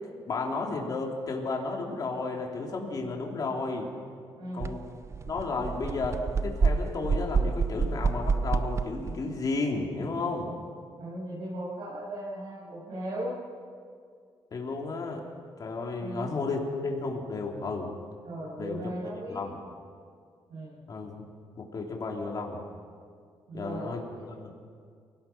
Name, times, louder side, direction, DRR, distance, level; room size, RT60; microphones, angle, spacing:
voice 1, 0.3-3.9 4.5-4.8 5.3-6.2 6.4-10.5 14.5-15.2 15.6-17.9 18.6-18.9 19.3-19.6 20.9-21.2 21.5-22.6 23.5-24.5, left 3 dB, 45° left, 0 dB, 3.3 m, -33 dB
voice 2, 4.4-4.7 11.0-13.4 16.0-16.3 18.2-19.6 20.5-20.8 23.5-24.3, right 1 dB, 75° right, -7 dB, 7.3 m, -37 dB
sound 1, 4.6-4.7 5.1-9.2, right 4 dB, 30° right, 0.6 m, -28 dB
27.5 x 18.0 x 5.9 m, 2.1 s
cardioid pair, 135°, 9 cm